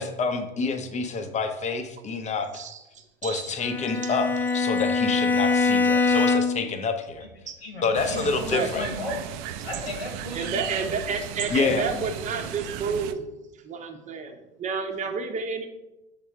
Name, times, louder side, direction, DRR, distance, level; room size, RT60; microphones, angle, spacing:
voice 1, 0.0-2.5 3.2-7.3 7.8-8.9 11.5-11.9, left 4 dB, 25° left, 7 dB, 0.8 m, -27 dB
voice 2, 2.5-3.5 4.0-4.2 7.5-7.6 8.5-8.7 10.3-13.3 13.6-15.7, right 5 dB, 25° right, 4 dB, 0.9 m, -31 dB
Bowed string instrument, 3.6-6.7, left 4 dB, 5° left, 0.3 m, -23 dB
voice 3, 7.6-9.2 9.6-10.9, left 2 dB, 80° left, 2 dB, 1.5 m, -35 dB
sound 1, 7.9-13.1, right 10 dB, 50° right, 0.5 m, -35 dB
6.7 x 3.6 x 4.5 m, 0.96 s
figure-of-eight pair, 85°, 31 cm